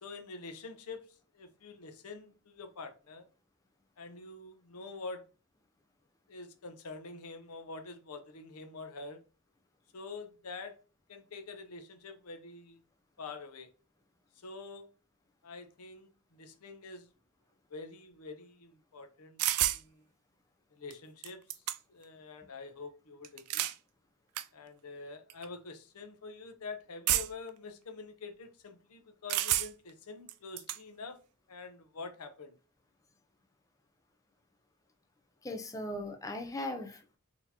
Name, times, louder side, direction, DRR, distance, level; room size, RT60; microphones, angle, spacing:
voice 1, 0.0-3.2 4.0-5.2 6.3-9.2 9.9-10.7 11.1-12.8 13.2-13.7 14.3-14.9 15.4-17.1 17.7-19.4 19.7-20.0 20.7-21.6 21.9-23.7 24.5-31.2 31.5-32.6, left 3 dB, 85° left, 0.7 m, -46 dB
sound 1, 19.4-19.8 20.9-21.0 21.2-22.0 23.2-23.8 24.4-24.5 25.3-25.5 27.1-27.5 29.3-29.9 30.3-30.8, right 14 dB, 80° right, 0.3 m, -30 dB
voice 2, 35.4-37.2, left 1 dB, 15° left, 0.4 m, -38 dB
4.0 x 2.9 x 2.8 m
head